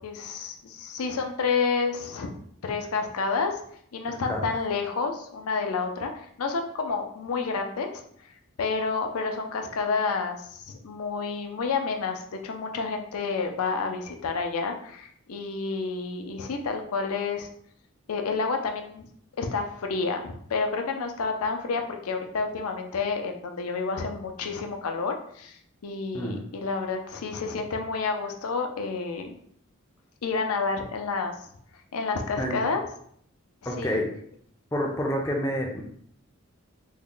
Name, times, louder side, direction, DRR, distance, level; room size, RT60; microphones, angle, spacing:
voice 1, 0.0-3.6 3.9-8.0 8.6-17.5 18.1-19.1 19.4-29.4 30.2-31.4 31.9-32.8 33.6-34.0, left 4 dB, 80° left, 4 dB, 0.5 m, -29 dB
voice 2, 33.7-34.2 34.7-35.8, equal, 15° left, 0 dB, 0.4 m, -28 dB
3.5 x 2.1 x 3.7 m, 0.65 s
head